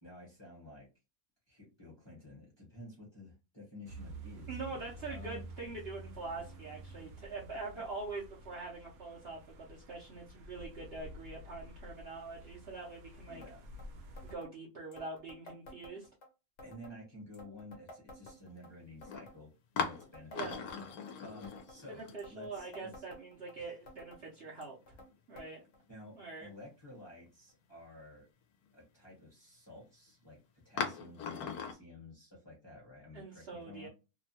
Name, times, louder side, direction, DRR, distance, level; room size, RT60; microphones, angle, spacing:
voice 1, 0.0-0.9 1.5-5.4 7.5-7.8 10.4-10.6 13.3-13.7 16.6-20.7 21.0-23.0 23.5-23.8 25.9-28.3 28.7-33.9, left 2 dB, 20° left, -4 dB, 0.9 m, -52 dB
sound 1, 3.9-14.4, right 2 dB, 75° right, 1.1 m, -50 dB
voice 2, 4.5-13.4 14.2-16.1 20.3-20.6 21.9-25.0 25.3-25.6 26.1-26.5 33.1-33.9, right 3 dB, 55° right, -4 dB, 0.8 m, -44 dB
sound 2, 13.4-13.5 13.8-13.9 14.2-14.5 14.9-16.3 16.6-17.0 17.3-18.7 19.0-19.4 19.8-21.1 21.4-21.8 22.2-23.5 23.9-24.2 24.6-25.1 25.4-25.5 25.7-25.8 26.6-26.7 27.5-27.6, left 1 dB, 55° left, 1.0 m, -53 dB
sound 3, 18.3-18.4 19.0-19.3 19.8-22.7 22.9-23.0 24.5-25.1 25.6-25.7 26.3-26.4 30.8-31.7, left 6 dB, 85° left, 1.1 m, -39 dB
2.9 x 2.2 x 2.7 m, 0.29 s
omnidirectional pair, 1.6 m